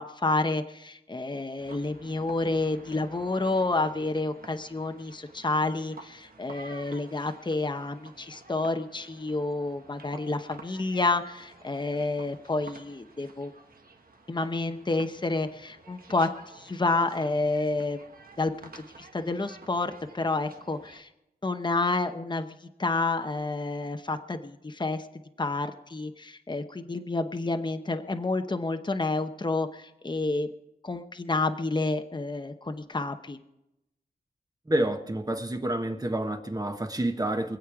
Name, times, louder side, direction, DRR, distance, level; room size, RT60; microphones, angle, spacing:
voice 1, 0.0-13.5 14.3-18.0 18.4-21.1 21.4-25.1 25.4-30.5 30.8-33.4, left 2 dB, 25° left, 0.9 m, -29 dB
sound 1, 1.6-21.0, right 3 dB, 60° right, 1.4 m, -51 dB
voice 2, 34.7-37.6, right 1 dB, 25° right, 1.3 m, -28 dB
24.5 x 8.3 x 4.7 m
wide cardioid pair, 85°, 17 cm